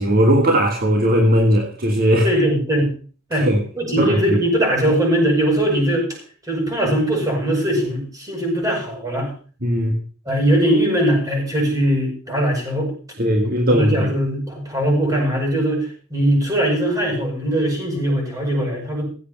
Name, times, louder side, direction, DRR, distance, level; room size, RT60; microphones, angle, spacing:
voice 1, 0.0-2.3 3.3-3.6 4.0-4.4 9.6-10.0 13.2-14.1, equal, 45° right, 1.8 m, -18 dB
voice 2, 2.2-2.9 3.3-3.5 3.7-6.1 6.5-9.3 10.3-12.9 13.7-19.0, right 1 dB, 15° right, 7.9 m, -20 dB
16.5 x 8.3 x 6.0 m
head